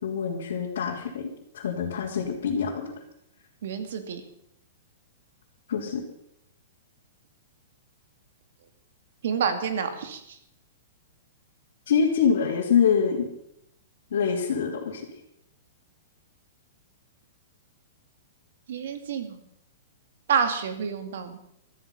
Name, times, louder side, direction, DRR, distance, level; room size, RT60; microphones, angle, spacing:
voice 1, 0.0-2.9 5.7-6.0 11.9-13.3 14.1-15.0, left 6 dB, 70° left, -5 dB, 3.1 m, -25 dB
voice 2, 3.6-4.2 9.2-10.4 18.7-19.4 20.3-21.4, right 7 dB, 60° right, 8 dB, 2.4 m, -28 dB
15.0 x 13.5 x 5.5 m, 0.76 s
hypercardioid pair, 175°, 0 cm